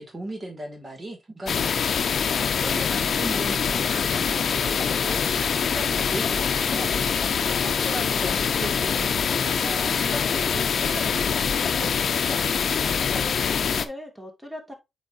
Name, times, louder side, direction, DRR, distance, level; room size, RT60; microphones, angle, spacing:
voice 1, 0.0-7.0 7.6-12.4, right 1 dB, 35° right, 2.2 m, -38 dB
sound 1, 1.5-13.8, left 6 dB, 70° left, 0.6 m, -24 dB
voice 2, 13.1-14.7, left 1 dB, 10° right, 2.0 m, -39 dB
8.1 x 4.6 x 2.6 m
cardioid pair, 90°, 0 cm